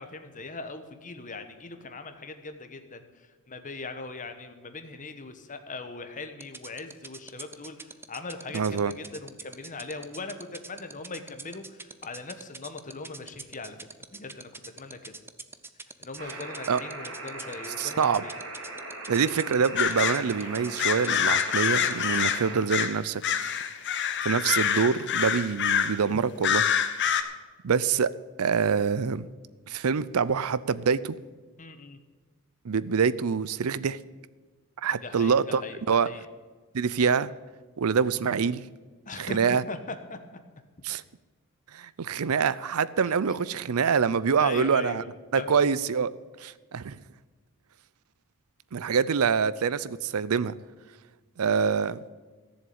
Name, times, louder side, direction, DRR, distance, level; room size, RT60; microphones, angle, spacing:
voice 1, 0.0-14.5 14.8-15.1 16.0-18.4 31.6-32.0 34.9-36.3 39.1-40.2 43.1-43.2 44.4-45.7, left 3 dB, 40° left, 8 dB, 1.2 m, -40 dB
sound 1, 6.4-22.3, right 3 dB, 10° right, 0.6 m, -42 dB
voice 2, 8.5-8.9 16.7-16.8 17.8-18.2 19.1-23.2 24.2-26.6 27.6-28.1 28.4-29.3 29.7-31.2 32.6-34.0 34.8-35.6 35.9-36.1 36.7-37.3 37.8-38.6 39.2-39.6 40.8-41.0 41.7-45.0 45.3-46.1 46.4-47.0 48.7-50.5 51.4-52.0, right 6 dB, 85° right, 18 dB, 0.5 m, -25 dB
sound 2, 16.2-22.6, right 2 dB, 65° right, 2.7 m, -40 dB
sound 3, 19.8-20.2 20.8-23.0 23.2-26.0 26.4-27.2, left 8 dB, 55° left, 0.9 m, -26 dB
14.0 x 7.2 x 8.7 m, 1.4 s
head